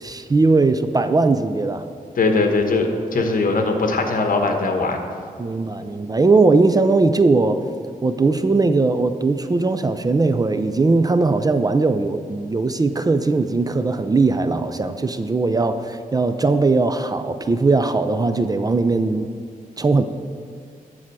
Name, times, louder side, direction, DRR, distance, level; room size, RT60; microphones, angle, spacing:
voice 1, 0.0-1.9 3.2-3.3 5.4-7.6 8.0-19.3 19.8-20.1, right 3 dB, 25° right, 10 dB, 0.4 m, -19 dB
voice 2, 2.2-5.1, left 3 dB, 65° left, 4 dB, 1.1 m, -20 dB
9.8 x 7.2 x 4.6 m, 2.2 s
wide cardioid pair, 125°, 15 cm